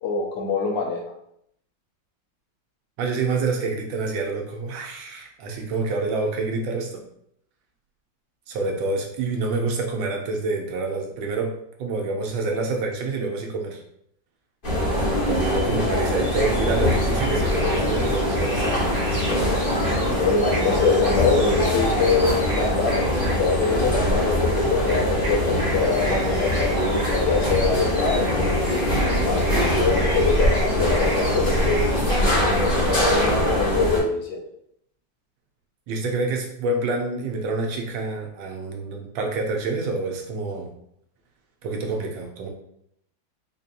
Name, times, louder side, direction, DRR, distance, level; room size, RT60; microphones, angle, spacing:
voice 1, 0.0-1.0 20.0-28.6 29.1-31.8 32.7-34.4, left 4 dB, 70° left, -1 dB, 1.3 m, -24 dB
voice 2, 3.0-7.0 8.5-11.5 11.8-13.8 15.3-19.3 35.9-40.7 41.6-42.5, right 3 dB, 90° right, 1 dB, 1.5 m, -27 dB
sound 1, 14.6-34.0, left 1 dB, 30° left, 1.2 m, -23 dB
sound 2, 16.2-33.4, right 1 dB, 25° right, 0.8 m, -35 dB
4.5 x 2.7 x 2.5 m, 0.71 s
omnidirectional pair, 2.1 m